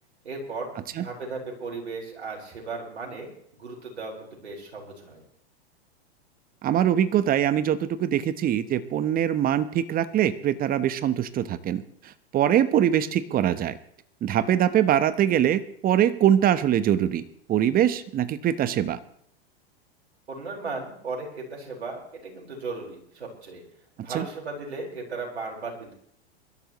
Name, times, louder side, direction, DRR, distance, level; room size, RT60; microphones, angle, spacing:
voice 1, 0.2-5.2 20.3-23.6 24.0-25.9, right 3 dB, 90° right, -1 dB, 4.7 m, -36 dB
voice 2, 6.6-13.8 14.2-19.0 24.1-24.2, right 10 dB, 25° right, 15 dB, 0.9 m, -23 dB
23.5 x 12.5 x 3.1 m, 0.64 s
hypercardioid pair, 110°, 32 cm